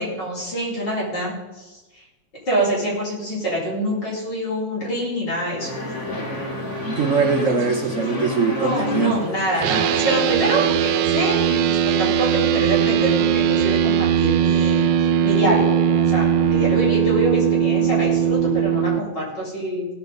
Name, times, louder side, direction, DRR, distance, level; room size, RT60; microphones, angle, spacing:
voice 1, 0.0-2.0 2.5-6.0 8.6-14.9 15.2-19.9, right 1 dB, 75° left, -5 dB, 4.9 m, -25 dB
sound 1, 5.6-10.7, left 2 dB, 40° left, 2.7 m, -29 dB
voice 2, 6.9-9.3, right 5 dB, 55° right, 4 dB, 0.9 m, -22 dB
sound 2, 9.6-19.0, right 9 dB, 80° right, 1.2 m, -19 dB
16.5 x 7.2 x 5.3 m, 1.1 s
omnidirectional pair, 2.0 m